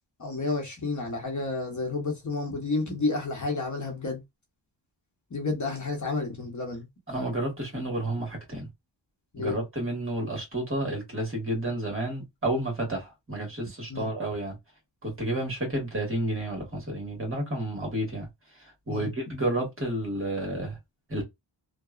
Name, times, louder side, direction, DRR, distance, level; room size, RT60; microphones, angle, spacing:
voice 1, 0.2-4.2 5.3-6.9 9.3-9.6 13.9-14.1 18.9-19.1, left 3 dB, 40° left, 1.0 m, -30 dB
voice 2, 7.1-8.7 9.4-14.6 15.0-18.3 18.6-20.8 21.1-21.2, right 1 dB, 30° right, 1.5 m, -31 dB
2.9 x 2.2 x 2.4 m
wide cardioid pair, 80°, 44 cm